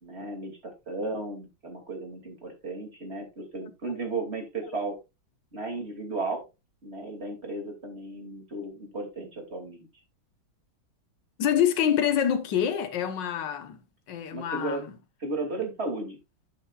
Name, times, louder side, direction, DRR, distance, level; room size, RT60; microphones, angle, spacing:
voice 1, 0.0-5.0 5.5-6.4 6.8-9.9 14.3-14.8 15.2-16.2, right 2 dB, 30° right, 2.8 m, -34 dB
voice 2, 11.4-13.8 14.1-14.9, left 9 dB, 65° left, 1.8 m, -26 dB
10.5 x 8.6 x 2.4 m
omnidirectional pair, 2.2 m